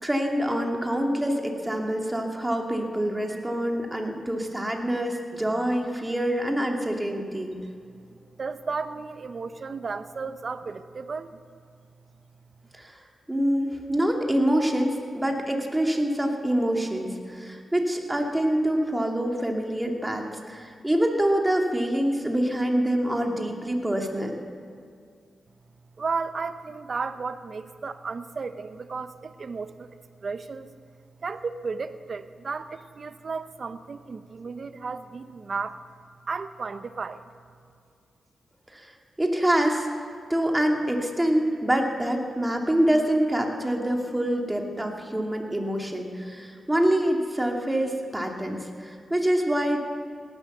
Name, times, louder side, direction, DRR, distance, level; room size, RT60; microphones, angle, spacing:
voice 1, 0.0-7.5 12.7-12.9 13.3-24.3 38.7-38.9 39.2-39.9 40.3-49.8, right 1 dB, 15° right, 1 dB, 2.6 m, -25 dB
voice 2, 8.4-11.4 26.0-30.7 31.2-35.8 36.3-37.3, right 4 dB, 55° right, 11 dB, 0.9 m, -34 dB
18.0 x 11.5 x 6.7 m, 2.2 s
cardioid pair, 60°, 0 cm